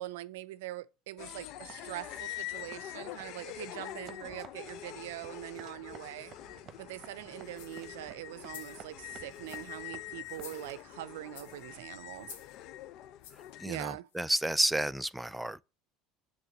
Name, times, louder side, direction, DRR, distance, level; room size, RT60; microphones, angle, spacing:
voice 1, 0.0-6.3 6.8-12.3 13.6-14.1, right 15 dB, 85° right, 0.5 m, -43 dB
sound 1, 1.2-13.7, left 13 dB, 60° left, 0.5 m, -45 dB
sound 2, 1.7-11.0, right 8 dB, 40° right, 1.2 m, -55 dB
sound 3, 7.5-7.9 8.4-8.8 9.3-9.8 10.3-10.9 11.4-11.7 12.2-12.6 13.2-13.5 14.1-14.2, left 9 dB, 85° left, 1.2 m, -51 dB
voice 2, 13.6-15.6, right 1 dB, 5° right, 0.3 m, -31 dB
7.5 x 3.6 x 6.3 m
supercardioid pair, 100°, 0 cm